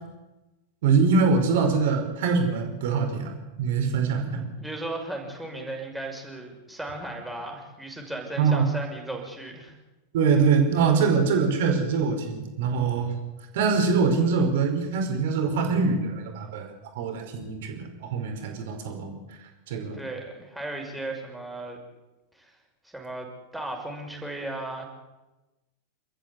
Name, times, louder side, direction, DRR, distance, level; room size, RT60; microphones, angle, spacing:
voice 1, 0.8-4.5 8.4-8.6 10.1-13.1 13.5-16.7 16.9-19.2 19.7-20.0, right 5 dB, 55° right, 5 dB, 5.1 m, -23 dB
voice 2, 4.6-9.8 19.9-21.8 22.3-22.6 22.8-24.8, right 2 dB, 5° right, 1 dB, 6.0 m, -36 dB
28.0 x 14.0 x 8.4 m, 1.1 s
figure-of-eight pair, 90°, 0 cm